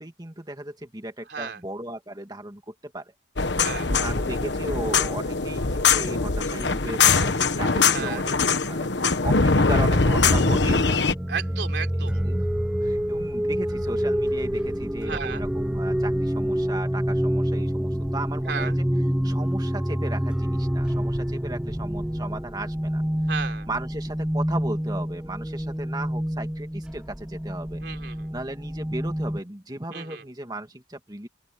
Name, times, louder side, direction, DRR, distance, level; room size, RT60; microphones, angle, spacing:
voice 1, 0.0-3.1 3.9-8.3 8.6-11.1 12.2-12.4 12.8-18.8 19.2-23.0 23.7-27.8 28.3-31.3, right 1 dB, 20° right, 2.4 m, -36 dB
voice 2, 1.3-1.6 3.6-3.9 7.9-8.2 11.3-12.2 15.1-15.4 18.4-18.8 23.3-23.7 27.8-28.3 29.9-30.2, right 6 dB, 60° right, 3.7 m, -33 dB
sound 1, 3.4-11.1, left 4 dB, 65° left, 1.3 m, -22 dB
sound 2, 9.7-29.4, equal, 5° right, 0.5 m, -27 dB
open air
head